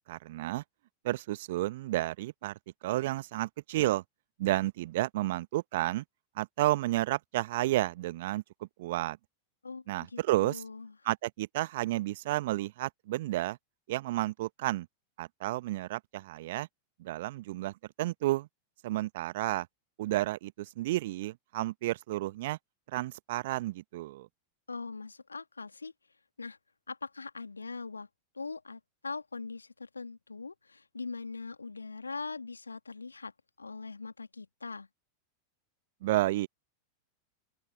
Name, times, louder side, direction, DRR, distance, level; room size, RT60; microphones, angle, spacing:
voice 1, 0.1-0.6 1.0-4.0 4.4-6.0 6.4-8.4 8.8-9.2 9.9-10.6 11.0-13.6 13.9-14.9 15.2-16.7 17.0-18.5 18.8-19.7 20.0-22.6 22.9-24.3 36.0-36.5, right 16 dB, 55° right, 1.0 m, -31 dB
voice 2, 9.6-10.9 24.7-25.9 26.4-26.6 26.9-28.1 28.3-33.3 33.6-34.9, left 4 dB, 80° left, 2.0 m, -41 dB
figure-of-eight pair, 90°, 0 cm